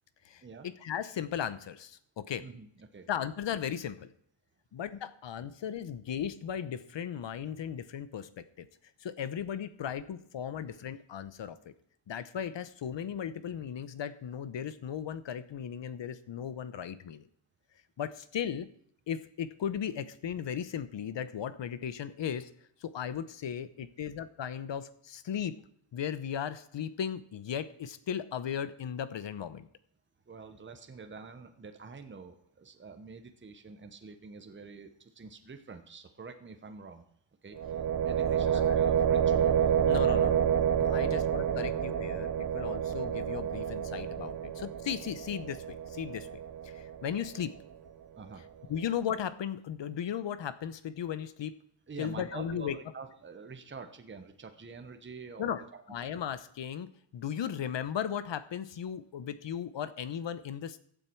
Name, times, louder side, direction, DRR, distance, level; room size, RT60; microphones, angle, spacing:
voice 1, 0.2-2.4 3.1-4.1 4.7-8.7 9.0-11.7 12.1-17.3 18.0-18.7 19.1-22.5 22.8-25.6 25.9-29.7 38.4-38.7 39.8-40.5 40.8-47.6 48.7-51.5 52.0-52.7 55.4-55.6 55.9-60.8, left 8 dB, 60° left, 14 dB, 0.9 m, -36 dB
voice 2, 2.4-3.1 30.3-37.0 37.4-39.6 40.1-40.4 40.9-41.2 41.5-41.7 48.2-48.5 51.9-55.8, right 4 dB, 25° right, 7 dB, 1.0 m, -47 dB
sound 1, 37.6-47.4, right 8 dB, 45° right, 0.7 m, -29 dB
15.0 x 9.2 x 4.6 m, 0.65 s
wide cardioid pair, 130°, 49 cm